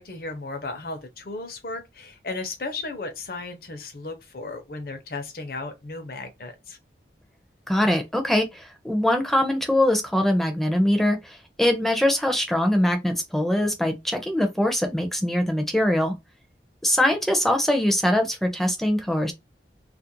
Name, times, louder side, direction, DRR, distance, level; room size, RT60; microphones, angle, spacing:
voice 1, 0.0-6.8, left 3 dB, 55° left, 0.7 m, -35 dB
voice 2, 7.7-16.2 16.8-19.3, left 1 dB, ahead, 0.5 m, -22 dB
2.5 x 2.1 x 2.8 m
head